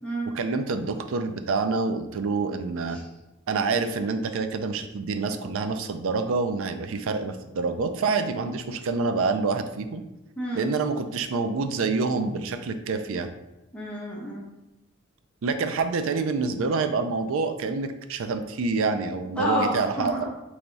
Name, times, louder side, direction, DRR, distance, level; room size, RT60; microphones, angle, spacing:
voice 1, 0.3-3.0 3.5-10.0 10.5-13.3 15.4-20.2, right 4 dB, 70° right, 8 dB, 0.4 m, -27 dB
voice 2, 10.4-10.7 13.7-14.4 19.4-20.3, equal, 5° left, -6 dB, 0.9 m, -29 dB
3.5 x 3.3 x 3.9 m, 0.95 s
head